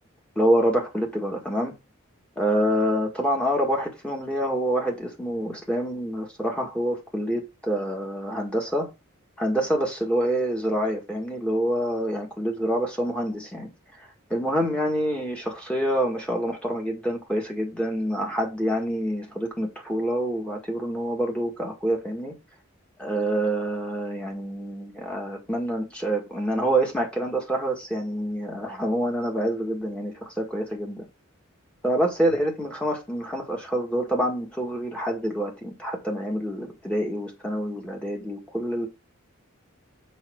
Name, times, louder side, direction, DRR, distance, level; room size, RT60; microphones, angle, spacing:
voice 1, 0.4-1.8 2.4-8.9 9.4-13.7 14.3-22.4 23.0-31.0 31.8-38.9, right 1 dB, 5° left, 2.0 m, -26 dB
6.4 x 5.5 x 3.8 m
head